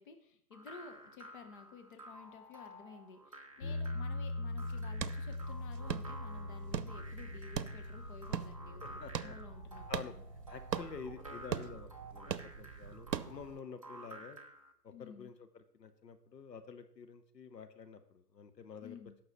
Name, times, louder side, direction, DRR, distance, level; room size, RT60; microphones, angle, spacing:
voice 1, 0.0-10.2 14.9-15.3 18.8-19.1, left 5 dB, 30° left, 6 dB, 1.1 m, -53 dB
sound 1, 0.5-14.7, right 1 dB, 20° right, 0.4 m, -53 dB
sound 2, 3.6-12.5, left 2 dB, 50° left, 3.0 m, -43 dB
sound 3, 4.6-13.6, right 8 dB, 80° right, 0.7 m, -42 dB
voice 2, 8.8-9.4 9.9-10.1 10.5-14.4 14.8-19.0, left 6 dB, 75° left, 9 dB, 1.2 m, -49 dB
16.0 x 6.1 x 4.2 m, 0.68 s
figure-of-eight pair, 145°, 50 cm